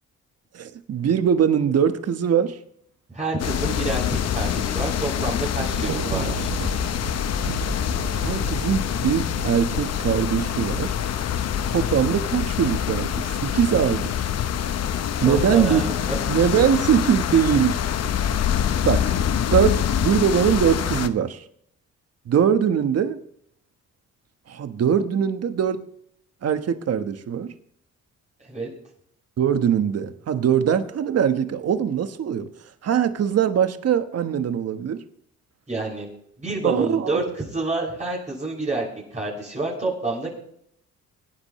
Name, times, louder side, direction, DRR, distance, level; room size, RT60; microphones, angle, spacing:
voice 1, 0.5-2.6 8.1-10.9 11.7-14.1 15.2-15.8 16.3-17.8 18.8-19.1 19.5-21.4 22.3-23.2 24.5-25.9 26.4-27.5 29.4-32.5 32.8-35.0 36.6-37.2, right 8 dB, 55° right, 1.2 m, -22 dB
voice 2, 3.1-6.5 15.2-16.2 28.4-28.7 35.7-36.1 36.4-38.9 39.1-40.3, right 2 dB, 25° right, 6.3 m, -28 dB
sound 1, 3.4-21.1, left 9 dB, 55° left, 0.9 m, -25 dB
Thunder, 5.6-10.9, right 7 dB, 75° right, 1.8 m, -34 dB
24.0 x 10.0 x 3.1 m
cardioid pair, 90°, 30 cm